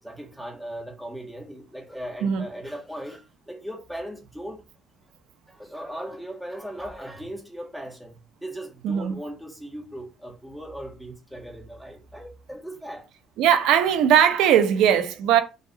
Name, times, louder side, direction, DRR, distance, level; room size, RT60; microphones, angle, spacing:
voice 1, 0.0-4.6 5.5-13.1, equal, ahead, 1.6 m, -38 dB
voice 2, 8.8-9.2 13.4-15.4, right 9 dB, 75° right, 0.9 m, -19 dB
5.4 x 3.9 x 4.9 m
cardioid pair, 175°, 0 cm